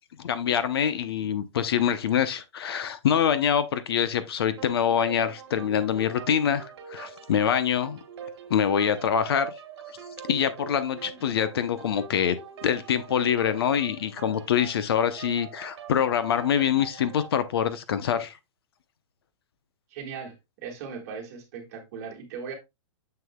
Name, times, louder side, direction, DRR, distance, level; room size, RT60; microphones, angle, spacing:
voice 1, 0.2-8.0 8.5-9.5 10.3-12.4 12.6-18.3, left 8 dB, 55° left, 0.7 m, -25 dB
sound 1, 4.6-17.4, right 7 dB, 55° right, 1.5 m, -43 dB
voice 2, 19.9-22.5, right 6 dB, 30° right, 1.8 m, -38 dB
6.9 x 6.6 x 2.2 m
hypercardioid pair, 180°, 16 cm